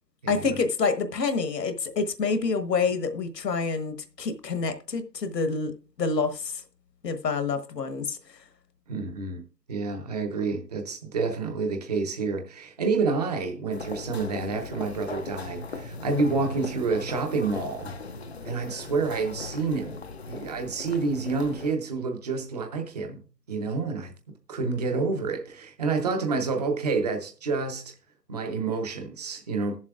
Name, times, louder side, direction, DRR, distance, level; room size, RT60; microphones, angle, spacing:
voice 1, 0.3-6.6 7.0-8.2, left 4 dB, 75° left, 1.3 m, -27 dB
voice 2, 8.9-9.4 9.7-17.9 18.4-24.1 24.5-27.9 28.3-29.8, right 4 dB, 25° right, 0.7 m, -28 dB
sound 1, 13.7-21.7, left 3 dB, 45° left, 0.5 m, -39 dB
19.0 x 7.3 x 2.4 m
hypercardioid pair, 155°, 50 cm